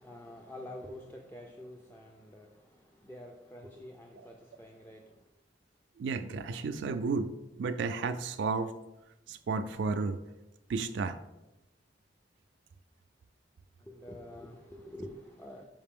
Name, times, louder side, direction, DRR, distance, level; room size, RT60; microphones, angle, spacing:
voice 1, 0.0-2.5 3.0-5.0 13.9-15.7, left 1 dB, 10° left, 1 dB, 0.4 m, -47 dB
voice 2, 6.0-7.3 7.6-8.8 9.3-10.2 10.7-11.2, right 4 dB, 85° right, 8 dB, 0.3 m, -32 dB
5.7 x 4.9 x 3.6 m, 0.96 s
head